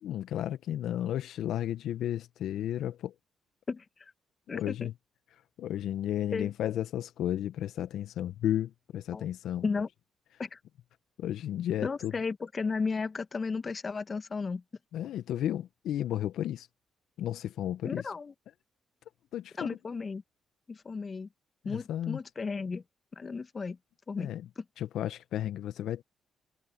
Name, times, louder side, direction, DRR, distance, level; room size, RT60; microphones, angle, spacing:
voice 1, 0.0-3.1 4.5-4.9 5.6-9.7 11.2-12.1 14.9-16.7 17.2-18.0 19.3-19.8 21.6-22.2 24.2-24.5 24.8-26.0, left 11 dB, 70° left, 1.4 m, -33 dB
voice 2, 3.7-4.1 4.5-4.9 6.3-6.5 9.1-9.3 9.6-9.9 10.4-10.6 11.8-14.6 17.8-18.3 19.6-20.2 20.7-21.3 21.6-22.8 23.1-23.8 24.1-24.6, left 4 dB, 40° left, 1.8 m, -34 dB
hypercardioid pair, 45°, 0 cm